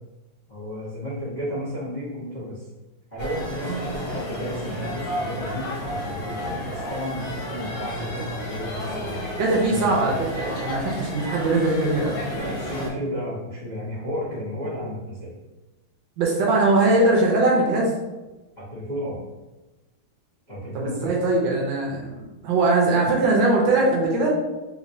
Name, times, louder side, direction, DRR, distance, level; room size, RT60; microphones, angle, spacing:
voice 1, 0.5-2.6 3.1-6.4 6.7-9.4 9.6-9.8 10.0-10.3 12.3-15.3 18.6-19.2 20.5-21.1, equal, 35° left, -12 dB, 0.8 m, -32 dB
sound 1, 3.2-12.9, equal, 65° left, 1.6 m, -32 dB
voice 2, 9.4-12.1 12.4-12.5 16.2-17.9 20.7-22.1 22.4-24.3, right 2 dB, 75° right, -2 dB, 1.3 m, -21 dB
3.5 x 3.0 x 2.6 m, 1.1 s
omnidirectional pair, 2.2 m